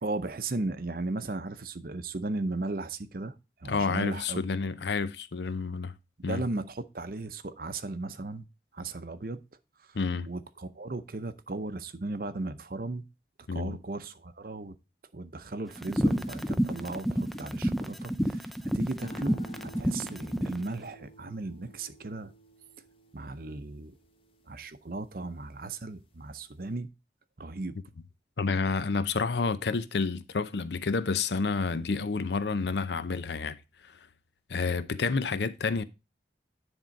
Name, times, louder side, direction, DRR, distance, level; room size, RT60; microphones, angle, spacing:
voice 1, 0.0-4.4 6.3-8.5 8.7-9.4 9.8-10.0 10.3-13.0 13.5-14.7 15.1-22.3 23.1-23.9 24.5-26.9 27.4-27.7, right 2 dB, 50° right, 0.7 m, -36 dB
voice 2, 3.7-5.9 6.2-6.4 9.9-10.3 13.5-13.8 28.4-33.6 33.9-34.0 34.5-35.8, left 4 dB, 70° left, 0.6 m, -29 dB
sound 1, 15.8-20.6, equal, ahead, 0.4 m, -29 dB
sound 2, 19.0-25.5 26.0-26.5, right 1 dB, 30° left, 1.0 m, -51 dB
10.0 x 3.7 x 5.2 m
head